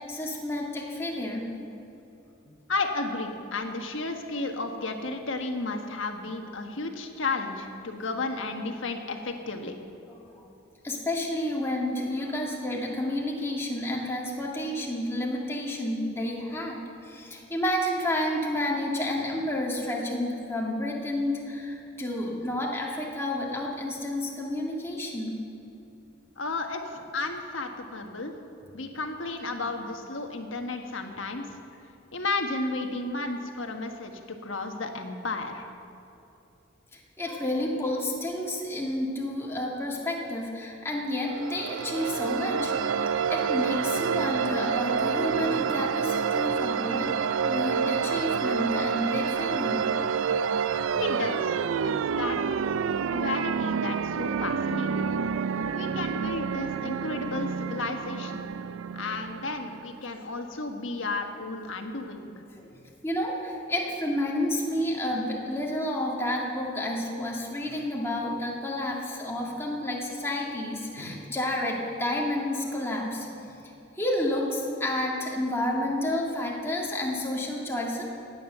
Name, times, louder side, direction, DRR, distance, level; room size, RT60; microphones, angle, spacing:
voice 1, 0.1-1.5 2.5-2.6 10.1-10.5 10.8-25.4 36.9-42.7 43.3-47.1 47.5-49.8 55.6-55.7 62.6-73.6 73.9-78.0, left 1 dB, 15° left, -2 dB, 2.1 m, -30 dB
voice 2, 2.7-9.7 26.4-28.3 28.7-31.5 32.1-35.6 51.0-51.6 51.8-52.5 53.0-55.1 55.7-58.5 58.9-62.3, left 3 dB, 75° left, 4 dB, 1.4 m, -33 dB
sound 1, 41.3-59.9, right 6 dB, 80° right, 0.4 m, -28 dB
16.5 x 9.9 x 6.7 m, 2.8 s
head